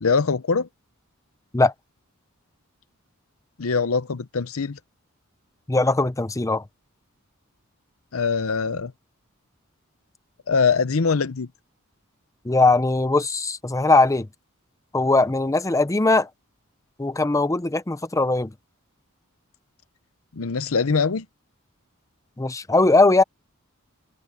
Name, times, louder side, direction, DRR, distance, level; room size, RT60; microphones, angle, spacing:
voice 1, 0.0-0.7 3.6-4.8 8.1-8.9 10.5-11.5 20.3-21.3, left 5 dB, 75° left, 0.8 m, -22 dB
voice 2, 5.7-6.6 12.4-14.3 14.9-16.3 17.0-18.5 22.4-23.2, left 2 dB, 15° left, 0.6 m, -20 dB
head